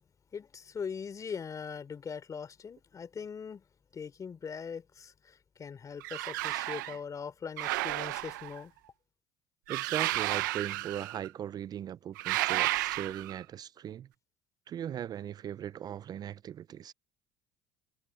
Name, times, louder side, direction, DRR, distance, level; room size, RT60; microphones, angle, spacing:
voice 1, 0.3-3.6 3.9-8.7, left 6 dB, 35° left, 3.3 m, -41 dB
sound 1, 6.0-7.0 7.6-8.6 9.7-11.3 12.2-13.4, right 19 dB, 90° right, 0.7 m, -32 dB
voice 2, 9.7-14.1 14.7-16.9, right 10 dB, 40° right, 0.4 m, -39 dB
supercardioid pair, 85°, 10 cm